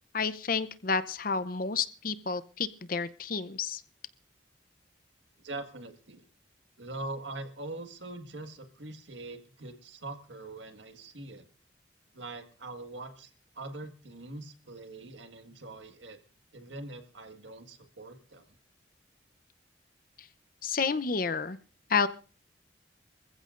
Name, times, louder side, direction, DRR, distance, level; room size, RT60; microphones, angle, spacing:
voice 1, 0.1-3.8 20.6-21.6 21.9-22.1, left 5 dB, 50° left, 14 dB, 0.7 m, -30 dB
voice 2, 5.4-6.2 6.8-11.5 12.1-13.3 13.6-16.2 16.5-18.4, right 2 dB, 80° right, 7 dB, 1.8 m, -43 dB
25.5 x 15.0 x 2.6 m, 0.38 s
head